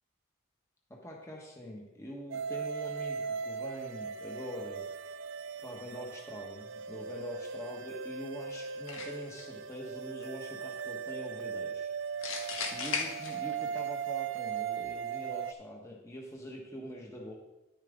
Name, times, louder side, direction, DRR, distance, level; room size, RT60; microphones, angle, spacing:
voice 1, 0.9-4.9 5.6-11.9 12.2-12.3 12.7-17.3, equal, 15° left, -2 dB, 1.2 m, -44 dB
sound 1, 2.3-15.5, right 7 dB, 65° right, 0.5 m, -38 dB
sound 2, 8.9-9.4 12.2-13.8, left 5 dB, 80° left, 1.5 m, -36 dB
10.5 x 8.9 x 3.7 m, 0.97 s
head